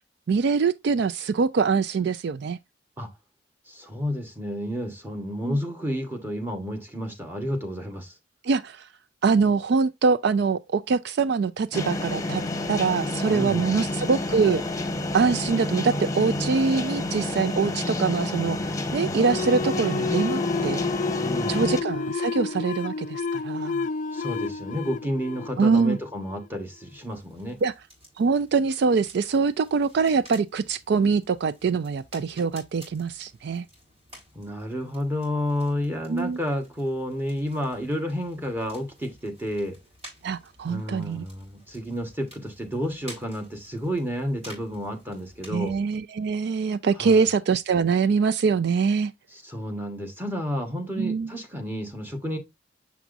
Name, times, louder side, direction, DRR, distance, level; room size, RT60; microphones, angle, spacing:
voice 1, 0.3-2.6 5.4-5.6 8.4-8.9 9.2-12.4 12.7-14.6 15.1-20.8 21.5-23.9 25.6-26.0 27.6-27.7 28.2-33.7 36.1-36.4 40.2-41.2 45.5-49.1 51.0-51.3, right 5 dB, 65° right, 0.4 m, -24 dB
voice 2, 3.7-8.1 13.3-13.9 21.2-21.6 24.1-27.6 34.3-39.8 40.7-45.8 47.0-47.3 49.3-52.4, equal, 10° right, 1.4 m, -31 dB
sound 1, 11.7-21.8, left 2 dB, 20° left, 1.0 m, -29 dB
sound 2, 19.2-26.5, left 4 dB, 45° left, 0.4 m, -30 dB
sound 3, 26.9-45.7, equal, 35° right, 4.6 m, -51 dB
7.1 x 5.9 x 2.5 m
head